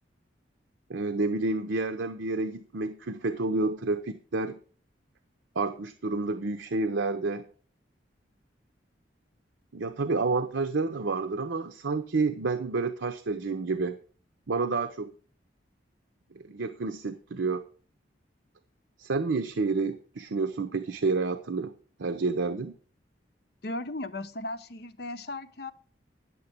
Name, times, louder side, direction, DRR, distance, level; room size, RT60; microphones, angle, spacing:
voice 1, 0.9-4.6 5.5-7.5 9.7-14.0 14.5-15.1 16.3-17.6 19.0-21.7 22.0-22.7, right 3 dB, 85° right, 7 dB, 0.7 m, -29 dB
voice 2, 23.6-25.7, left 2 dB, 60° left, 11 dB, 0.8 m, -36 dB
10.0 x 6.8 x 6.7 m, 0.42 s
head